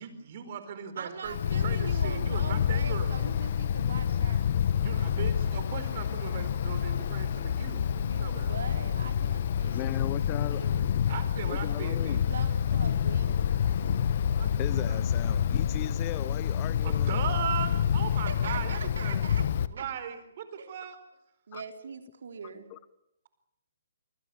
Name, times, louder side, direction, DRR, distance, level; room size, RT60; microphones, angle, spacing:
voice 1, 0.0-3.3 4.8-8.6 11.1-12.2 14.4-15.4 16.8-19.2 19.7-21.0, right 8 dB, 45° right, 10 dB, 4.5 m, -38 dB
voice 2, 1.0-5.1 7.9-10.9 12.3-13.6 18.3-19.5 19.8-19.9 20.6-20.7 21.5-22.7, right 5 dB, 70° right, 5 dB, 3.7 m, -42 dB
Wind, 1.3-19.7, left 8 dB, 50° left, 1.3 m, -28 dB
voice 3, 9.7-10.6 11.5-12.2 14.6-17.2 21.5-21.6 22.7-22.8, left 16 dB, 25° left, 17 dB, 0.8 m, -37 dB
28.0 x 20.0 x 7.1 m, 0.82 s
hypercardioid pair, 155°, 0 cm